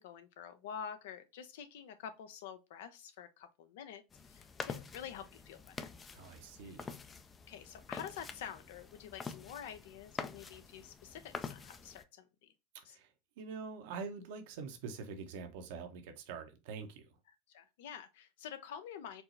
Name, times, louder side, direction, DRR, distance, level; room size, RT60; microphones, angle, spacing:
voice 1, 0.0-5.9 6.6-6.7 7.5-12.5 12.8-13.0 17.5-19.2, left 8 dB, 75° left, 0.7 m, -48 dB
sound 1, 4.1-12.0, left 5 dB, 25° left, 0.4 m, -46 dB
voice 2, 6.1-6.9 12.9-13.1 13.4-17.1, right 5 dB, 70° right, 0.9 m, -45 dB
4.6 x 2.0 x 3.9 m
supercardioid pair, 105°, 0 cm